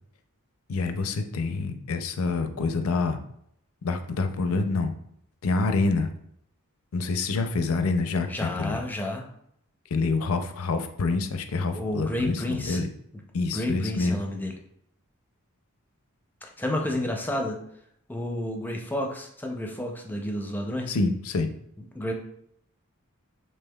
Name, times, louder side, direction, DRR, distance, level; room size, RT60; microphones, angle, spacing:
voice 1, 0.7-3.2 3.8-4.9 5.4-6.1 6.9-8.8 9.9-12.9 13.3-14.2 20.9-21.5, left 3 dB, 70° left, 7 dB, 0.5 m, -27 dB
voice 2, 8.3-9.3 11.7-12.8 13.1-13.2 13.5-14.5 16.4-17.6 18.1-21.0 21.8-22.1, left 1 dB, 10° left, 2 dB, 0.5 m, -30 dB
5.3 x 3.3 x 2.3 m, 0.72 s
head